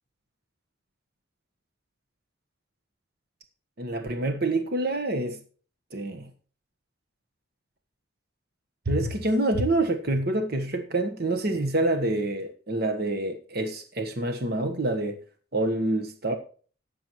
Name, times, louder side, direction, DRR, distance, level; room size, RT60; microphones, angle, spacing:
voice 1, 3.8-5.4 5.9-6.3 8.9-15.2 15.5-16.3, right 2 dB, 50° right, 1.2 m, -27 dB
18.5 x 6.9 x 3.1 m
head